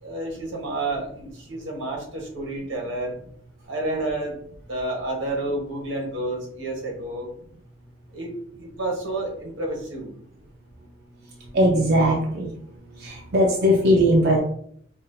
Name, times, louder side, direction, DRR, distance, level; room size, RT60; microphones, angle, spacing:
voice 1, 0.0-3.1 3.7-4.3 4.7-7.3 8.1-8.3 8.6-10.1, right 2 dB, 85° right, 0 dB, 1.3 m, -30 dB
voice 2, 11.5-12.5 12.9-14.5, equal, 55° right, -2 dB, 0.7 m, -19 dB
5.6 x 2.4 x 2.7 m, 0.66 s
head